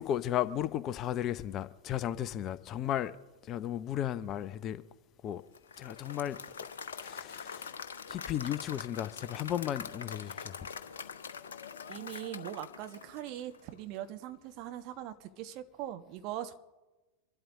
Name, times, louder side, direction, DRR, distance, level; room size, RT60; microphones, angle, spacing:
voice 1, 0.0-3.1 3.4-4.8 5.2-5.4 5.8-6.4 7.0-7.8 8.1-10.6, left 11 dB, 35° left, 0.6 m, -34 dB
Applause / Crowd, 5.5-13.7, left 6 dB, 65° left, 0.9 m, -44 dB
voice 2, 11.9-16.5, right 12 dB, 40° right, 1.2 m, -41 dB
25.5 x 12.5 x 3.7 m
figure-of-eight pair, 90°, 0 cm